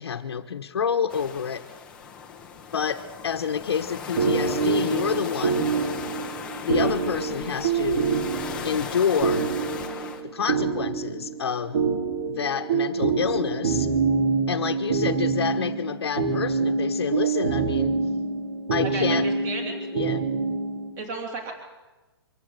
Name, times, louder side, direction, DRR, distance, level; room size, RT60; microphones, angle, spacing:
voice 1, 0.0-1.7 2.7-5.7 6.6-8.1 8.6-9.5 10.2-11.8 12.3-13.9 14.5-18.0 18.7-19.3 19.9-20.3, left 7 dB, 75° left, 2 dB, 1.3 m, -28 dB
sound 1, 1.1-10.2, left 6 dB, 5° left, 1.0 m, -37 dB
sound 2, 4.2-20.9, right 5 dB, 45° right, 2.8 m, -26 dB
voice 2, 18.9-19.7 21.0-21.5, right 3 dB, 15° right, 2 dB, 3.2 m, -33 dB
24.5 x 15.5 x 8.2 m, 1.2 s
hypercardioid pair, 180°, 14 cm